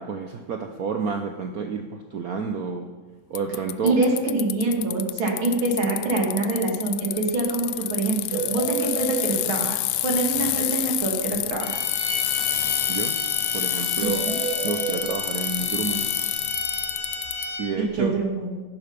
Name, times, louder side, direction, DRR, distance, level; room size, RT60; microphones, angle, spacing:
voice 1, 0.0-2.9 3.3-4.0 12.9-13.2 13.5-14.3 14.6-16.1 17.6-18.1, right 5 dB, 60° right, 4 dB, 1.1 m, -30 dB
Bicycle, 3.4-17.5, left 15 dB, 80° left, 0.8 m, -28 dB
voice 2, 3.8-9.8 10.0-11.8 14.0-14.4 17.8-18.6, right 2 dB, 85° right, 0 dB, 3.3 m, -25 dB
sound 1, 7.1-7.2 7.4-7.6 7.8-7.9 8.3-9.3 14.0-15.0, right 6 dB, 30° right, 3.1 m, -30 dB
sound 2, 11.6-17.8, left 2 dB, 20° left, 3.4 m, -32 dB
14.5 x 11.5 x 5.2 m, 1.3 s
omnidirectional pair, 2.2 m